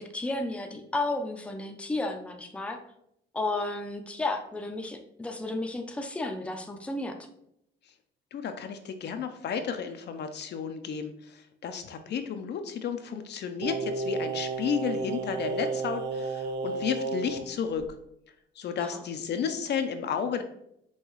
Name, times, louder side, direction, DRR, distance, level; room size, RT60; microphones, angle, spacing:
voice 1, 0.0-2.8 3.3-7.1 18.8-19.0, left 2 dB, 5° left, 4 dB, 0.5 m, -33 dB
voice 2, 8.3-17.8 18.6-20.4, left 7 dB, 60° left, 7 dB, 0.5 m, -32 dB
Singing, 13.6-17.5 17.8-17.9, right 4 dB, 65° right, 0.4 m, -32 dB
5.4 x 2.3 x 3.1 m, 0.74 s
cardioid pair, 90°, 20 cm